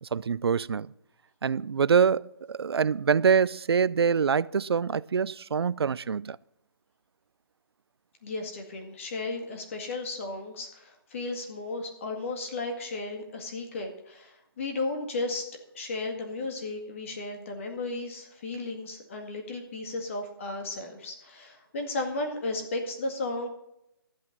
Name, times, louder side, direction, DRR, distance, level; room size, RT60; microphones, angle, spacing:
voice 1, 0.0-0.9 1.4-6.4, right 6 dB, 90° right, 0.4 m, -25 dB
voice 2, 8.2-15.5 15.7-23.5, left 2 dB, 30° left, 1.9 m, -34 dB
12.5 x 8.7 x 5.2 m
hypercardioid pair, 170°, 13 cm